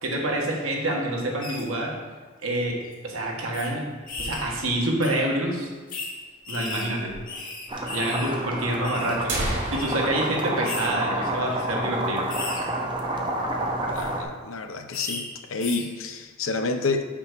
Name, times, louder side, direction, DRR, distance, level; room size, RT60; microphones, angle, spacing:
voice 1, 0.0-1.9 2.4-2.8 3.0-3.9 4.2-5.7 6.5-7.1 7.9-9.3 9.7-12.3, right 1 dB, 90° right, -1 dB, 1.5 m, -27 dB
sound 1, 1.4-1.6 2.4-2.6 2.8-2.9 3.5-3.7 4.1-4.5 5.0-5.2 5.9-6.1 6.4-8.3 8.6-9.2 9.7-9.9 10.6-10.9 11.4-11.6 12.3-12.6 13.8-14.1 14.9-15.2 15.6-15.8, left 3 dB, 40° left, 1.5 m, -35 dB
sound 2, 3.8-4.9 5.2-5.3 5.5-5.6 6.3-6.4 7.3-7.4 7.8-7.9 8.6-8.7 9.1-11.7 12.0-12.1 12.5-12.8 13.2-13.8, right 1 dB, 55° right, 1.6 m, -34 dB
sound 3, 7.7-14.2, right 1 dB, 25° right, 0.8 m, -29 dB
voice 2, 13.8-17.1, left 3 dB, 75° left, 7 dB, 0.6 m, -29 dB
6.1 x 6.0 x 4.6 m, 1.4 s
head